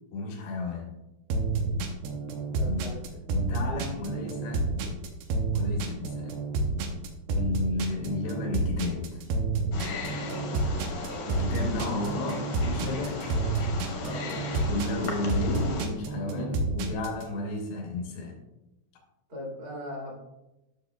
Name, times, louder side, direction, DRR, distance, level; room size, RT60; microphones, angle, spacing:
voice 1, 0.1-0.9 2.6-2.9 3.3-4.7 5.5-6.3 7.3-9.2 11.3-13.2 14.6-18.4, left 2 dB, 85° left, 0 dB, 3.0 m, -33 dB
sound 1, 1.3-17.2, right 3 dB, 80° right, 2.7 m, -29 dB
voice 2, 2.5-3.3 14.0-15.1 19.3-20.1, left 1 dB, 40° right, -5 dB, 2.0 m, -40 dB
Wild animals, 9.7-15.9, left 4 dB, 65° left, 1.7 m, -37 dB
10.5 x 6.4 x 2.3 m, 0.97 s
omnidirectional pair, 4.6 m